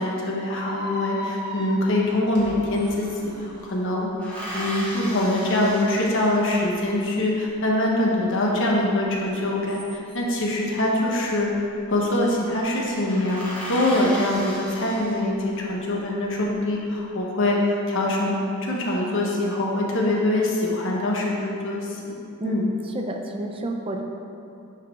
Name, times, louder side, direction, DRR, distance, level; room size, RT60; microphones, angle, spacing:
voice 1, 0.0-4.1 4.5-11.5 11.9-22.1 22.4-22.6, left 1 dB, 60° left, -2 dB, 1.2 m, -24 dB
sound 1, 0.6-3.7, left 1 dB, 50° right, 1.0 m, -36 dB
sound 2, 2.1-2.2 2.4-3.4 4.2-6.7 9.4-10.4 11.5-11.9 12.2-12.3 12.7-12.8 13.0-15.6 16.2-16.8, equal, 5° left, 1.8 m, -36 dB
voice 2, 22.4-24.0, right 1 dB, 25° right, 2 dB, 0.5 m, -30 dB
9.3 x 4.7 x 3.6 m, 2.6 s
head